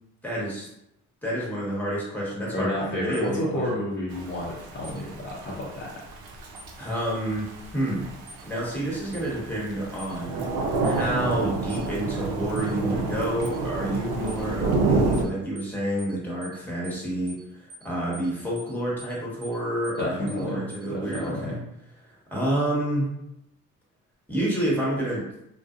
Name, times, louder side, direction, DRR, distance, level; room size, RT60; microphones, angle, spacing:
voice 1, 0.2-0.7 1.2-3.6 6.8-8.1 8.4-10.5 10.8-21.5 22.0-23.1 24.3-25.3, right 1 dB, 5° left, -5 dB, 1.1 m, -29 dB
voice 2, 2.5-6.0 20.0-21.6, left 1 dB, 30° left, -6 dB, 0.6 m, -30 dB
sound 1, 3.1-3.3 4.8-5.0 6.6-6.7 8.3-8.4 9.1-9.3 10.0-10.2 10.8-11.0 11.7-11.9 12.6-12.7 13.4-13.6 14.3-14.4 15.1-15.3 15.6-15.7 16.0-16.2 16.4-16.6 16.8-17.0 17.3-17.4 17.7-17.9 18.1-18.3 18.6-18.7 19.0-19.2 19.4-19.6 19.8-20.0 20.3-20.4 20.7-20.9 21.1-21.3, equal, 30° right, 0.6 m, -45 dB
Thunder / Rain, 4.1-15.2, right 3 dB, 80° right, 0.5 m, -28 dB
2.5 x 2.1 x 2.4 m, 0.80 s
supercardioid pair, 60°, 35 cm